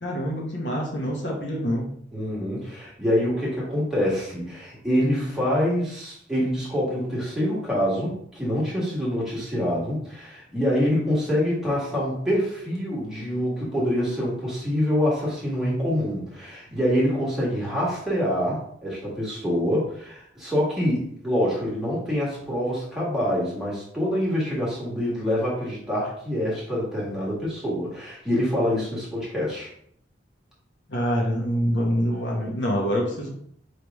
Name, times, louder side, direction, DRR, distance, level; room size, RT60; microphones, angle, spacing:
voice 1, 0.0-1.9 30.9-33.3, equal, 70° left, -1 dB, 1.1 m, -25 dB
voice 2, 2.1-29.7, equal, ahead, -7 dB, 1.6 m, -26 dB
4.7 x 3.3 x 3.5 m, 0.66 s
head